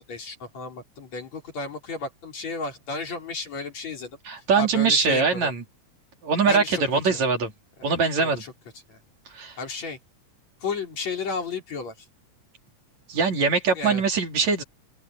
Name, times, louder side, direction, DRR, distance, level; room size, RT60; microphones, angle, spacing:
voice 1, 0.0-4.2 4.6-5.5 6.5-7.2 8.2-8.5 8.9-9.0 9.6-10.0 10.6-12.1 13.7-14.0, left 4 dB, 65° left, 5.8 m, -33 dB
voice 2, 4.3-5.6 6.2-7.5 7.8-8.4 9.3-9.6 13.1-14.6, right 5 dB, 70° right, 4.6 m, -22 dB
omnidirectional pair, 3.3 m